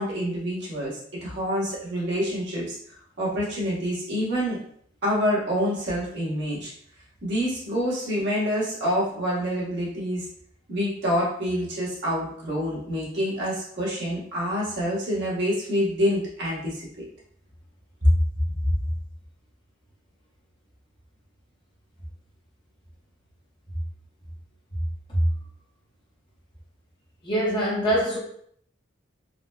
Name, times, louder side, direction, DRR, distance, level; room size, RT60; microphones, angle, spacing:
voice 1, 0.0-2.8 3.2-4.6 5.0-6.7 7.2-10.3 10.7-17.0 18.0-18.1 18.6-18.7, equal, 60° right, -6 dB, 1.2 m, -26 dB
voice 2, 27.2-28.2, equal, 25° left, -4 dB, 0.8 m, -24 dB
3.8 x 2.1 x 2.2 m, 0.64 s
head